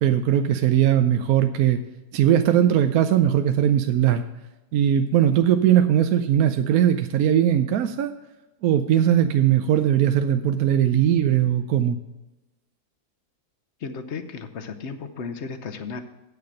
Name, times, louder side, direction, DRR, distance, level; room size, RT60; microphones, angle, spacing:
voice 1, 0.0-1.8 2.1-4.2 4.7-8.1 8.6-12.0, right 10 dB, 70° right, 9 dB, 1.0 m, -19 dB
voice 2, 13.8-16.0, left 5 dB, 55° left, 10 dB, 0.9 m, -34 dB
8.6 x 6.7 x 6.3 m, 1.0 s
omnidirectional pair, 1.7 m